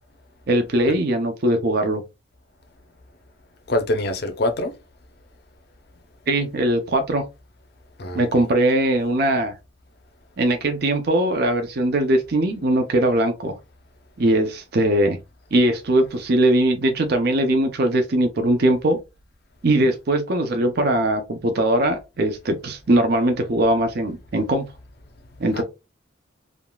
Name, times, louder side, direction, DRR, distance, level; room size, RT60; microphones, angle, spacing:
voice 1, 0.5-2.0 6.3-7.2 8.1-9.5 10.4-13.5 14.2-15.2 15.5-19.0 19.6-24.7 25.4-25.6, right 1 dB, 55° right, 0.5 m, -20 dB
voice 2, 3.7-4.8 8.0-8.5 25.5-25.6, left 1 dB, 55° left, 0.6 m, -25 dB
3.6 x 2.3 x 2.3 m
head